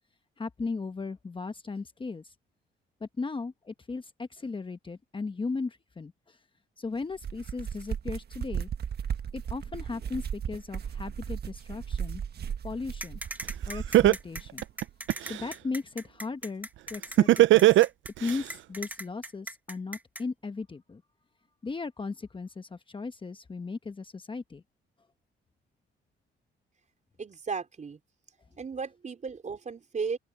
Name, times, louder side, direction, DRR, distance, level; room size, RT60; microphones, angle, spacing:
voice 1, 0.4-2.3 3.0-6.4 6.8-8.7 9.3-12.2 12.6-13.2 13.7-14.6 15.2-17.8 18.2-21.0 21.6-24.6, left 4 dB, 25° left, 1.2 m, -37 dB
sound 1, 7.0-14.2, right 8 dB, 55° right, 1.6 m, -36 dB
sound 2, 13.0-20.2, right 1 dB, 10° right, 1.3 m, -39 dB
Laughter, 13.4-13.5 13.9-15.4 17.2-18.4, right 15 dB, 75° right, 0.6 m, -18 dB
voice 2, 27.2-28.0 28.6-30.2, right 5 dB, 40° right, 4.7 m, -35 dB
open air
cardioid pair, 90°, 20 cm